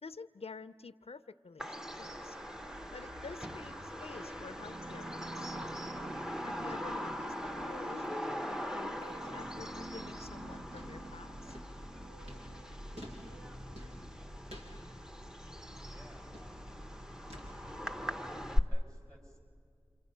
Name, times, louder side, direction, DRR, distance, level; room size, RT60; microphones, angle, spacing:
voice 1, 0.0-2.4 2.9-5.6 6.4-11.6, left 4 dB, 75° left, 13 dB, 0.5 m, -50 dB
Bird vocalization bird call bird song, 1.6-18.6, equal, 5° right, 0.9 m, -41 dB
sound 1, 1.8-18.7, left 1 dB, 90° right, 1.6 m, -50 dB
sound 2, 4.6-13.5, right 2 dB, 65° right, 0.8 m, -50 dB
voice 2, 15.9-16.9 17.1-17.5 18.7-19.4, equal, 30° right, 0 dB, 6.4 m, -58 dB
29.0 x 26.5 x 5.5 m, 2.4 s
wide cardioid pair, 45°, 10 cm